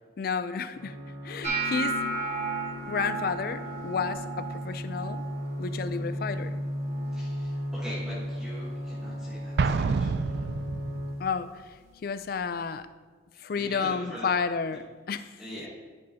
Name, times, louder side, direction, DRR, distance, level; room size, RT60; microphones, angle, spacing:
voice 1, 0.2-1.0 1.2-1.9 2.9-5.2 5.6-6.6 11.2-12.9 13.4-15.4, left 5 dB, 50° left, 12 dB, 0.4 m, -31 dB
sound 1, 0.7-11.1, equal, 85° right, 2.2 m, -36 dB
sound 2, 1.4-7.5 7.8-8.3 8.7-9.2 9.8-10.0 11.8-11.9, right 3 dB, 35° right, 1.4 m, -35 dB
voice 2, 7.1-10.3 13.5-14.3 15.4-15.7, equal, 5° right, -8 dB, 1.3 m, -42 dB
Explosion, 9.6-11.2, right 4 dB, 60° right, 0.3 m, -28 dB
12.5 x 5.4 x 2.8 m, 1.4 s
head